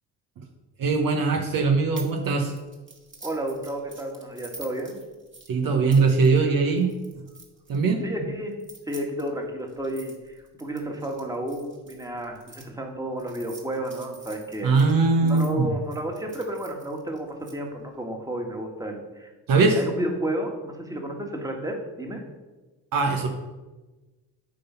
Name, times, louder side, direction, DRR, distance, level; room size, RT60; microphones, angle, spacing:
voice 1, 0.8-2.5 5.5-6.9 7.7-8.0 14.6-15.7 19.5-19.8 22.9-23.3, right 4 dB, 55° right, 3 dB, 1.0 m, -21 dB
sound 1, 2.0-2.2 2.5-7.8 8.5-12.6 13.2-15.5 15.9-17.5, right 2 dB, 30° right, 1.8 m, -46 dB
voice 2, 3.2-5.0 8.0-8.6 8.9-14.7 15.2-19.3 19.6-22.2, right 1 dB, 10° right, 2 dB, 1.7 m, -32 dB
8.6 x 3.9 x 5.6 m, 1.2 s
hypercardioid pair, 60°, 41 cm